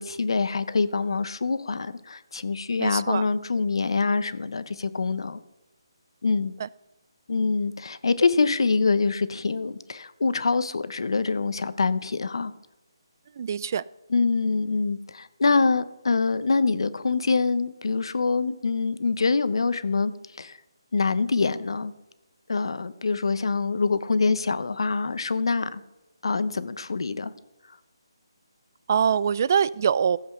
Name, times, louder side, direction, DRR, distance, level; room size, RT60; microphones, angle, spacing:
voice 1, 0.0-5.4 6.2-6.5 7.3-12.5 14.1-20.1 20.4-20.6 20.9-21.9 22.5-25.8 26.2-27.3, left 4 dB, 70° left, 14 dB, 0.9 m, -25 dB
voice 2, 2.8-3.2 13.4-13.8 28.9-30.2, right 7 dB, 35° right, 20 dB, 0.3 m, -23 dB
15.0 x 7.9 x 5.6 m, 0.97 s
hypercardioid pair, 165°, 3 cm